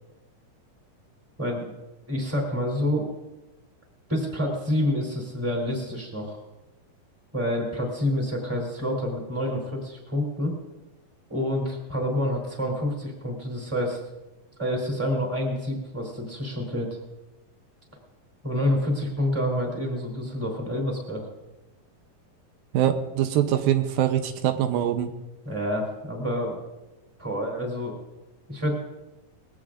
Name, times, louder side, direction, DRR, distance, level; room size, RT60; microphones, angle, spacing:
voice 1, 1.4-1.7 2.1-3.1 4.1-6.4 7.3-10.5 11.3-14.0 14.6-17.0 18.4-21.3 25.4-26.6 27.2-28.0 28.5-28.8, left 1 dB, 5° right, -1 dB, 2.7 m, -28 dB
voice 2, 22.7-25.1, right 11 dB, 85° right, 7 dB, 2.6 m, -23 dB
21.0 x 16.5 x 2.6 m, 1.0 s
omnidirectional pair, 4.1 m